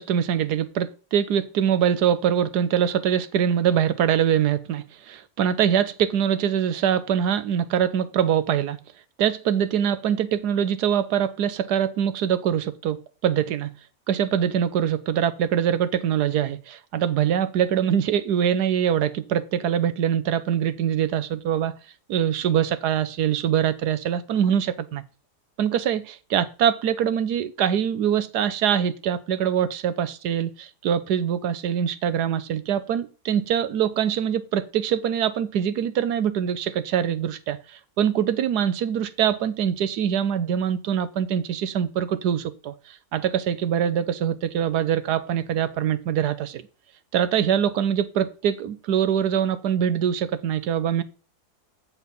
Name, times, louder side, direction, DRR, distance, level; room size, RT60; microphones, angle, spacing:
voice 1, 0.0-8.8 9.2-13.7 14.1-21.7 22.1-25.0 25.6-37.6 38.0-42.7 43.1-46.6 47.1-51.0, right 9 dB, 80° right, 1.4 m, -23 dB
14.0 x 4.8 x 5.4 m
omnidirectional pair, 1.7 m